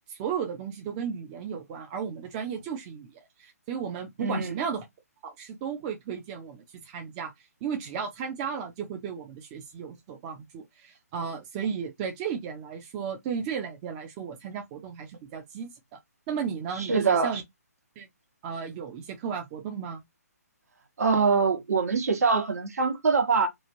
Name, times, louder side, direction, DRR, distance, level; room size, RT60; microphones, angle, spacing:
voice 1, 0.1-3.1 3.4-4.8 5.2-7.3 7.6-16.0 16.3-17.4 18.0-18.1 18.4-20.0, right 7 dB, 25° right, 0.6 m, -34 dB
voice 2, 4.2-4.6 16.7-17.3 21.0-23.5, right 5 dB, 65° right, 1.0 m, -24 dB
3.0 x 2.4 x 2.5 m
figure-of-eight pair, 140°, 9 cm